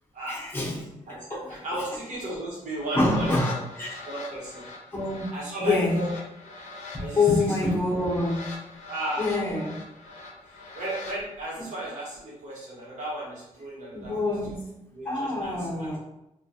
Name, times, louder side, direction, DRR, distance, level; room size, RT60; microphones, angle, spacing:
voice 1, 0.3-0.9 1.3-1.4 2.9-4.0 4.9-5.3 5.6-6.0 6.9-8.5 9.2-9.7 11.6-11.7 13.9-14.6 15.0-16.0, left 2 dB, 15° left, -5 dB, 0.6 m, -26 dB
voice 2, 1.1-3.6 4.1-4.6 5.3-6.1 7.0-7.6 8.9-9.4 10.4-14.1 14.9-16.0, right 1 dB, 65° right, -6 dB, 1.1 m, -35 dB
sound 1, 2.7-11.2, left 3 dB, 65° left, 0.5 m, -43 dB
2.3 x 2.2 x 2.6 m, 0.89 s
wide cardioid pair, 175°, 13 cm